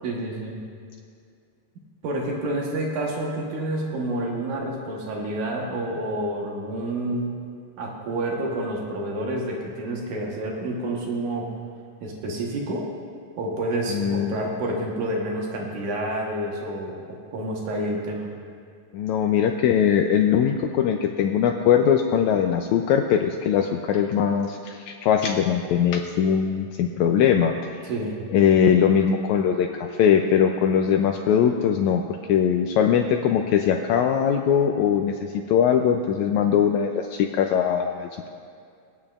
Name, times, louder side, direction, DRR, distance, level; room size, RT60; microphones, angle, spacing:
voice 1, 0.0-0.6 1.8-7.4 7.8-11.5 12.0-12.9 13.4-18.3 27.8-28.2, right 1 dB, 70° right, -1 dB, 2.6 m, -29 dB
voice 2, 13.9-14.4 18.9-27.5 28.3-32.0 32.3-38.3, left 8 dB, 80° left, 4 dB, 1.7 m, -21 dB
22.0 x 8.8 x 2.4 m, 2.3 s
omnidirectional pair, 3.7 m